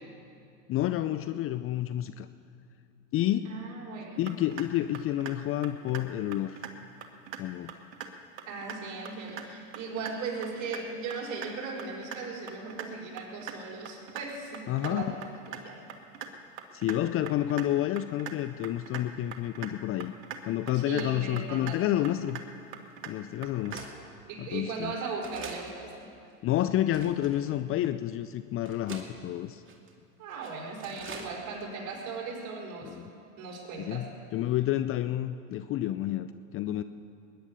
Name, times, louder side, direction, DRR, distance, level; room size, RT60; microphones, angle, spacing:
voice 1, 0.7-2.3 3.1-3.6 4.2-6.6 7.4-7.8 14.7-15.1 16.7-20.1 20.5-22.4 23.1-23.9 24.4-24.9 26.4-29.6 32.8-33.1 33.8-36.8, left 13 dB, 35° left, 11 dB, 0.5 m, -29 dB
voice 2, 3.4-4.2 8.5-15.2 15.5-15.8 20.7-21.8 24.2-26.1 30.2-33.1 33.4-34.0, right 4 dB, 45° right, -2 dB, 4.7 m, -38 dB
sound 1, 4.3-4.6 4.9-5.4 5.6-6.0 6.3-6.7 7.0-7.4 7.7-8.1 8.4-8.8 9.1-9.4 9.7-10.1 10.4-10.8 11.1-11.5 11.8-12.2 12.5-12.9 13.2-13.5 13.9-14.2 14.5-14.9 15.2-15.6 15.9-16.3 16.6-17.0 17.3-17.6 18.0-18.3 18.6-19.0 19.3-19.7 20.0-20.4 20.7-21.1 21.4-21.7 22.0-22.4 22.7-23.1 23.4-23.8, right 10 dB, 65° right, 1.6 m, -40 dB
sound 2, 22.1-22.2 22.9-23.0 23.7-23.9 24.7-24.8 25.2-25.7 26.3-26.4 26.9-27.5 28.1-28.2 28.7-29.1 29.7-29.9 30.3-30.5 30.8-31.3 31.6-31.7 31.9-32.0, right 5 dB, 30° right, 2.3 m, -44 dB
20.0 x 10.5 x 6.8 m, 2.5 s
hypercardioid pair, 85°, 41 cm